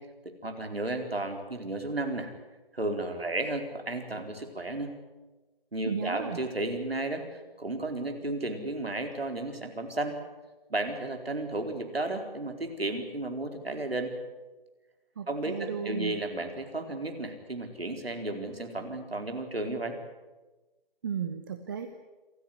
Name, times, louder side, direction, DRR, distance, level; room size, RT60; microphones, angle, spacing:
voice 1, 0.4-2.3 2.7-4.9 5.7-10.1 10.7-14.1 15.3-20.0, right 2 dB, 80° right, 5 dB, 4.2 m, -33 dB
voice 2, 5.8-6.4 15.2-16.2 21.0-21.9, right 7 dB, 20° right, 7 dB, 0.9 m, -34 dB
27.5 x 13.5 x 9.9 m, 1.2 s
figure-of-eight pair, 150°, 30 cm